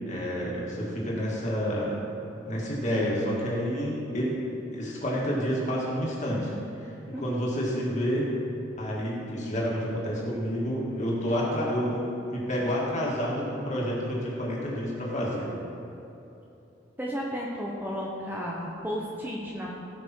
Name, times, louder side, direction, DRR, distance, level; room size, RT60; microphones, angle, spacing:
voice 1, 0.1-1.9 2.4-4.4 4.7-8.3 8.8-12.0 12.3-15.5, equal, 35° left, -5 dB, 2.2 m, -29 dB
voice 2, 7.1-7.5 17.0-19.7, equal, 10° right, -4 dB, 0.9 m, -33 dB
17.0 x 5.9 x 4.6 m, 2.9 s
head